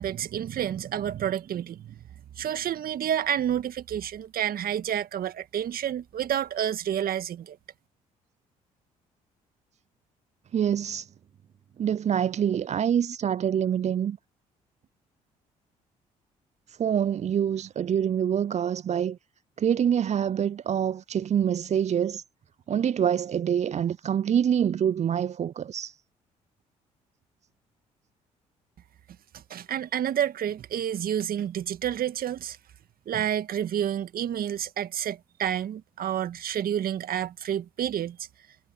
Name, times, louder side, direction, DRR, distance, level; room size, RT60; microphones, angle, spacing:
voice 1, 0.0-2.0 2.4-7.6 29.3-32.6 33.1-38.2, right 10 dB, 60° right, 1.9 m, -29 dB
voice 2, 10.5-11.1 11.8-14.2 16.7-19.2 19.6-22.2 22.7-26.0, right 9 dB, 40° right, 0.5 m, -26 dB
hypercardioid pair, 50°, 17 cm